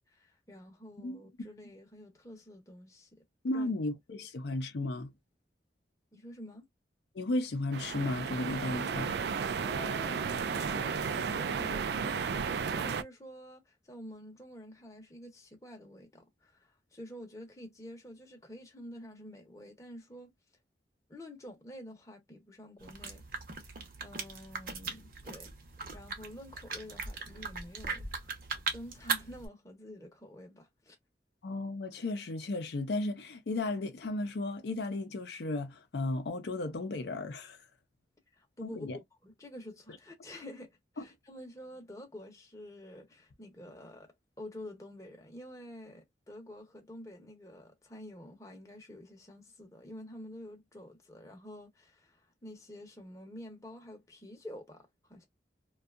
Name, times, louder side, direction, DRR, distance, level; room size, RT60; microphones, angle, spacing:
voice 1, 0.1-3.7 6.1-6.7 9.6-20.3 21.1-23.2 23.6-25.5 25.9-28.4 28.7-31.0 38.4-55.3, left 1 dB, 15° left, 0.7 m, -49 dB
voice 2, 1.0-1.5 3.4-5.1 7.1-9.1 31.4-37.6 38.6-39.0 41.0-41.1, left 2 dB, 70° left, 0.5 m, -34 dB
sound 1, 7.7-13.0, right 6 dB, 65° right, 0.3 m, -33 dB
sound 2, 22.8-29.5, right 5 dB, 50° right, 0.7 m, -39 dB
2.6 x 2.3 x 2.3 m
head